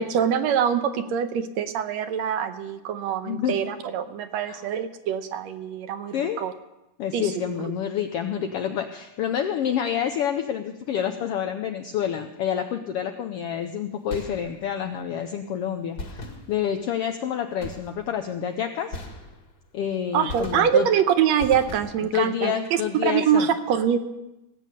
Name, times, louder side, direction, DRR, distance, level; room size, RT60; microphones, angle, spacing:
voice 1, 0.0-6.5 7.1-7.3 7.6-7.7 20.1-24.0, right 8 dB, 75° right, 9 dB, 1.9 m, -24 dB
voice 2, 3.2-3.6 4.5-4.6 6.1-6.4 7.0-19.0 19.7-20.9 22.0-23.5, left 9 dB, 80° left, 7 dB, 1.3 m, -28 dB
sound 1, 14.1-14.8 16.0-16.9 17.6-18.2 18.9-19.7 20.3-21.0 21.4-22.2, left 1 dB, 40° left, 2.0 m, -38 dB
18.0 x 8.4 x 6.7 m, 0.93 s
omnidirectional pair, 3.4 m